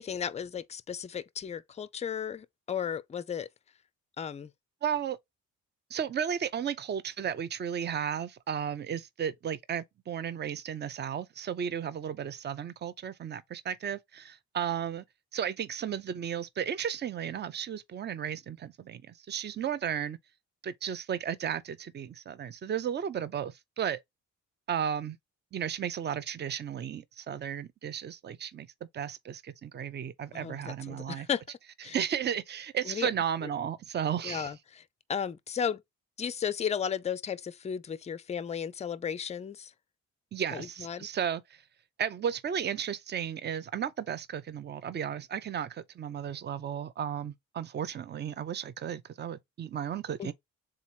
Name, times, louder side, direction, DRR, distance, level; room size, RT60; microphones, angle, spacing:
voice 1, 0.0-3.5 4.2-4.5 30.3-31.4 31.8-32.0 32.9-33.1 33.4-33.5 34.2-35.8 36.2-39.7 40.5-41.1 50.2-50.3, left 7 dB, 20° left, 0.4 m, -34 dB
voice 2, 4.8-5.2 5.9-15.0 15.3-20.2 20.6-24.0 24.7-25.2 25.5-28.7 28.9-31.3 31.9-34.5 40.3-41.4 42.0-50.3, right 8 dB, 35° right, 0.5 m, -34 dB
3.7 x 2.9 x 4.1 m
cardioid pair, 90°, 30 cm